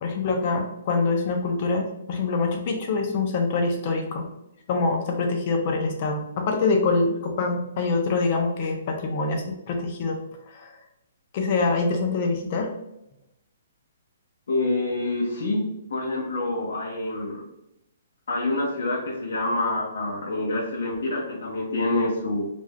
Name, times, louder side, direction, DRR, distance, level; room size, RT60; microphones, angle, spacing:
voice 1, 0.0-4.3 4.7-10.2 10.5-10.7 11.3-12.7, left 3 dB, 40° left, 3 dB, 0.6 m, -25 dB
voice 2, 14.5-15.6 15.9-17.4 18.3-22.5, left 2 dB, 75° left, -4 dB, 0.7 m, -26 dB
3.4 x 2.5 x 2.2 m, 0.84 s
hypercardioid pair, 150°, 0 cm